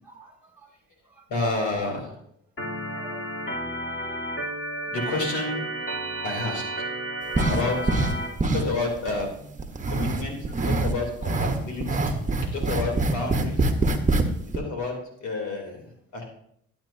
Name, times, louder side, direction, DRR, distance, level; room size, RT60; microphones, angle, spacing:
voice 1, 0.0-0.7 1.1-1.2 1.8-1.9 2.9-3.3 4.0-4.1 6.0-6.1 8.0-8.6 9.3-9.5 11.9-12.1, right 3 dB, 5° right, 0 dB, 2.5 m, -50 dB
voice 2, 1.3-2.1 4.9-5.7 6.2-6.8 7.5-7.8 8.5-9.3 9.9-10.4 10.6-12.1 12.5-13.7 14.5-15.8 16.1-16.2, left 3 dB, 75° left, 0 dB, 3.5 m, -29 dB
Organ, 2.6-8.3, right 1 dB, 45° left, 3.4 m, -32 dB
sound 1, 7.4-8.1 8.4-9.3 9.6-10.9 11.2-14.3 14.5-14.6, right 2 dB, 25° right, 1.2 m, -24 dB
12.5 x 8.8 x 2.8 m, 0.69 s
cardioid pair, 90°, 30 cm